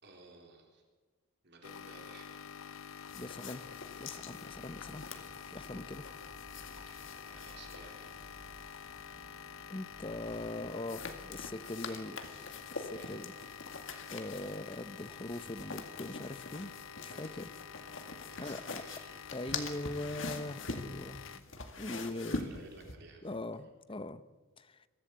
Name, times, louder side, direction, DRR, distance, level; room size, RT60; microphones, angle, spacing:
voice 1, 0.0-0.8 1.4-2.7 6.8-8.2 11.6-13.6 17.0-17.7 18.2-19.6 20.4-20.5 21.9-23.7, right 3 dB, 55° right, 2 dB, 3.8 m, -56 dB
sound 1, 1.6-21.4, left 7 dB, 80° left, 0.8 m, -48 dB
sound 2, 3.1-9.2 10.2-23.0, left 3 dB, 65° left, 2.1 m, -45 dB
voice 2, 3.1-3.7 4.0-5.1 5.4-6.0 9.7-12.2 12.7-13.3 14.1-16.8 17.0-17.5 18.4-18.8 19.3-21.4 21.8-22.4 23.2-24.2 24.6-24.9, left 2 dB, 25° left, 13 dB, 0.8 m, -41 dB
sound 3, 4.5-11.5, equal, 10° right, 1.0 m, -57 dB
23.0 x 15.5 x 8.2 m, 1.4 s
head